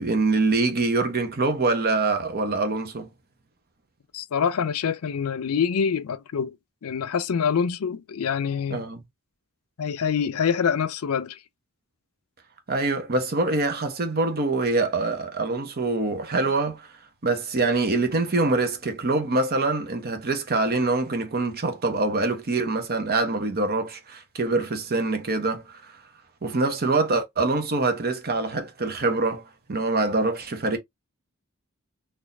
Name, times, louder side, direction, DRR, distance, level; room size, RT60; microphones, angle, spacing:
voice 1, 0.0-3.1 8.7-9.0 12.7-16.9 17.2-25.9 26.4-30.8, right 3 dB, 45° right, 0.9 m, -24 dB
voice 2, 4.1-6.6 6.8-8.8 9.8-11.4, left 7 dB, 80° left, 0.5 m, -25 dB
4.0 x 2.6 x 2.6 m
head